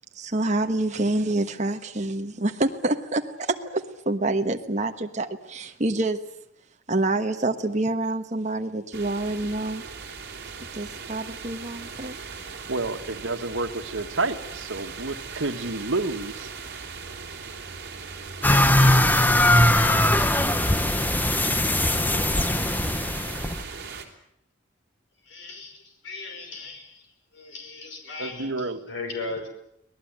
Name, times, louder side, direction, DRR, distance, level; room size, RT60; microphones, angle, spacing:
voice 1, 0.2-6.2 6.9-9.8 10.7-12.1, right 2 dB, 35° right, 5 dB, 1.3 m, -27 dB
sound 1, 8.9-24.0, right 5 dB, 55° right, 3.7 m, -39 dB
voice 2, 12.7-16.5 28.2-28.8, right 3 dB, 85° right, 7 dB, 1.8 m, -29 dB
sound 2, 18.4-23.6, left 1 dB, 10° left, 0.9 m, -20 dB
voice 3, 25.2-27.0 27.3-29.5, left 3 dB, 70° left, 4 dB, 5.5 m, -37 dB
25.5 x 18.5 x 9.1 m, 0.77 s
head